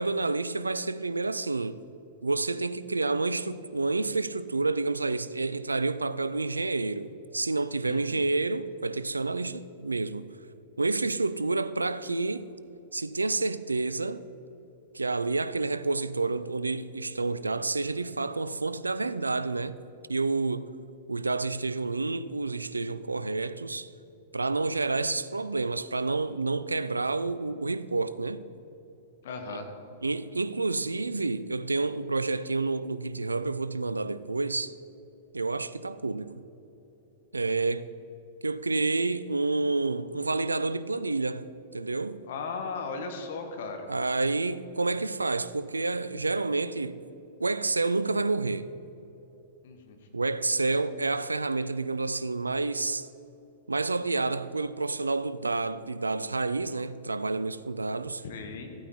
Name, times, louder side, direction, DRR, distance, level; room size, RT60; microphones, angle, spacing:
voice 1, 0.0-1.8 2.2-10.3 10.8-12.5 12.9-14.2 14.9-19.8 20.1-20.7 21.1-23.9 24.3-28.4 29.5-29.6 30.0-34.7 35.3-36.3 37.3-37.9 38.4-41.5 41.7-42.2 43.9-47.0 47.4-48.7 50.1-53.1 53.7-58.2, right 3 dB, 90° right, 0.4 m, -29 dB
voice 2, 7.8-8.3 29.2-29.7 42.2-43.9 49.6-50.0 58.2-58.7, left 4 dB, 60° left, 1.6 m, -37 dB
14.5 x 8.9 x 4.4 m
figure-of-eight pair, 100°, 0 cm